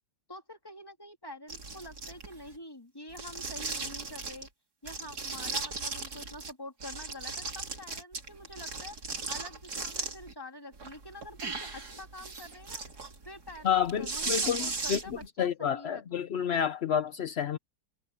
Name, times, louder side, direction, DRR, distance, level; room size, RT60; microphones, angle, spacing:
voice 1, 0.3-4.5 4.8-9.0 9.3-12.8 13.2-16.2, left 1 dB, 10° left, 2.7 m, -47 dB
sound 1, 1.5-2.5 3.1-4.5 4.9-6.5 6.8-10.3 10.7-15.3, right 4 dB, 60° right, 3.4 m, -37 dB
voice 2, 13.6-17.6, left 8 dB, 60° left, 0.7 m, -30 dB
omnidirectional pair, 1.9 m